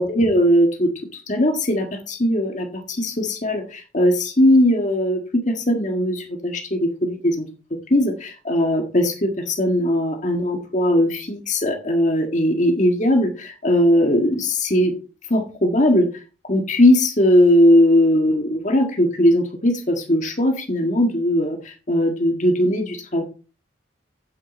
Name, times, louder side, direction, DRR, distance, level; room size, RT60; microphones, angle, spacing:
voice 1, 0.0-7.5 7.9-14.9 15.3-16.1 16.4-23.2, left 1 dB, 40° left, 3 dB, 1.7 m, -19 dB
8.8 x 8.5 x 4.2 m, 0.35 s
head